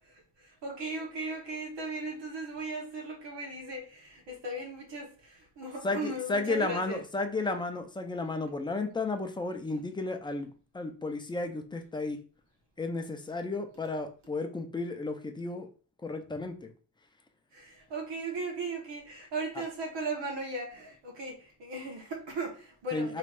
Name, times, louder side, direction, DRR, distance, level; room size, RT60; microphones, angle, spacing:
voice 1, 0.0-7.0 17.5-23.2, right 2 dB, 80° right, 1.3 m, -37 dB
voice 2, 5.8-12.2 12.8-15.7 16.0-16.7 22.9-23.2, left 3 dB, 10° left, 0.3 m, -33 dB
3.4 x 3.2 x 2.5 m
wide cardioid pair, 130°, 42 cm